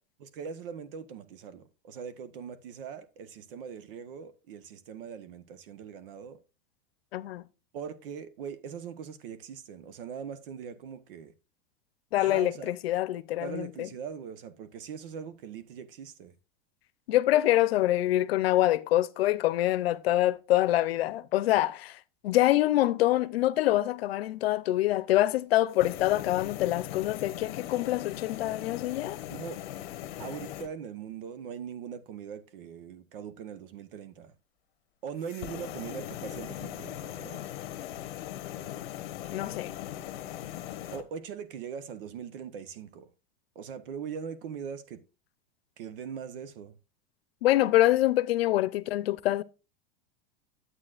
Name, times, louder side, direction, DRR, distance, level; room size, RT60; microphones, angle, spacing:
voice 1, 0.2-6.4 7.7-11.3 12.2-12.7 13.4-16.3 29.3-29.6 30.2-34.3 35.0-37.5 40.9-43.1 43.5-45.0 45.8-46.7, right 7 dB, 65° right, 1.1 m, -41 dB
voice 2, 7.1-7.4 12.1-13.9 17.1-22.0 22.2-29.2 39.3-39.7 47.4-49.4, left 15 dB, 90° left, 0.7 m, -25 dB
sound 1, 25.7-30.7 35.2-41.0, left 12 dB, 60° left, 1.1 m, -39 dB
10.0 x 8.2 x 2.5 m
supercardioid pair, 165°, 29 cm